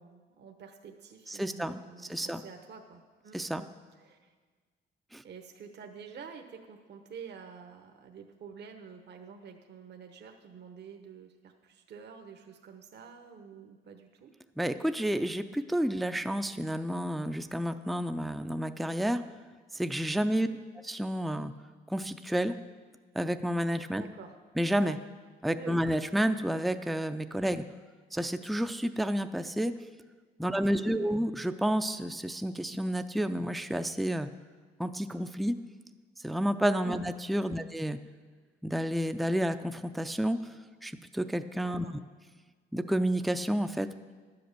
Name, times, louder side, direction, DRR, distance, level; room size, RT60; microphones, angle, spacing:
voice 1, 0.0-3.7 4.0-4.3 5.2-14.3 20.2-20.6 23.9-24.3 25.4-25.8 30.4-31.1 36.8-37.0 37.5-37.6 41.6-41.9, right 6 dB, 60° right, 5 dB, 1.0 m, -49 dB
voice 2, 1.3-1.8 2.1-2.4 3.3-3.6 5.1-5.2 14.6-19.2 19.7-20.5 20.8-21.5 21.9-22.6 23.1-24.0 24.6-25.0 25.4-27.6 28.1-29.7 30.4-34.3 34.8-35.6 36.2-38.0 38.6-40.6 40.8-41.9 42.7-43.9, equal, ahead, 9 dB, 0.5 m, -30 dB
12.0 x 7.9 x 6.7 m, 1.5 s
cardioid pair, 90°, 20 cm